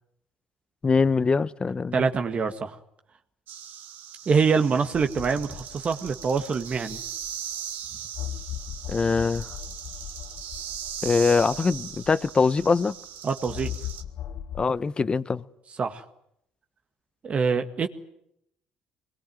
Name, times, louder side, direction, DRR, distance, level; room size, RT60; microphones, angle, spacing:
voice 1, 0.8-2.1 8.9-9.5 11.0-12.9 14.6-15.4, left 4 dB, 30° left, 1.0 m, -23 dB
voice 2, 1.9-2.8 4.3-7.0 13.2-13.7 15.8-16.0 17.2-17.9, right 5 dB, 40° right, 1.8 m, -25 dB
sound 1, 3.5-14.0, right 9 dB, 70° right, 2.2 m, -39 dB
sound 2, 4.9-7.5 8.1-12.8 13.5-14.7, left 10 dB, 65° left, 1.3 m, -39 dB
24.5 x 21.0 x 9.2 m
supercardioid pair, 75°, 3 cm